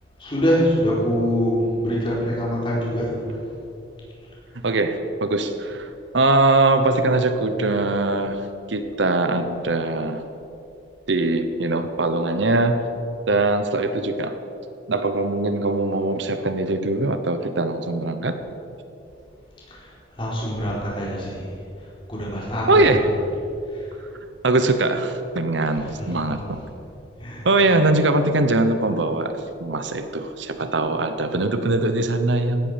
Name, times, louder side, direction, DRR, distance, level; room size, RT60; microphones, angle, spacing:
voice 1, 0.2-3.4 19.7-21.5 21.8-23.2 23.7-24.0 25.7-26.7 27.2-27.5, equal, 25° left, -6 dB, 4.4 m, -25 dB
voice 2, 4.5-5.9 6.1-10.2 11.1-12.9 13.3-14.4 14.9-18.4 22.7-23.0 24.4-26.6 27.4-32.7, right 2 dB, 75° right, 9 dB, 1.0 m, -21 dB
16.5 x 13.0 x 5.2 m, 2.6 s
head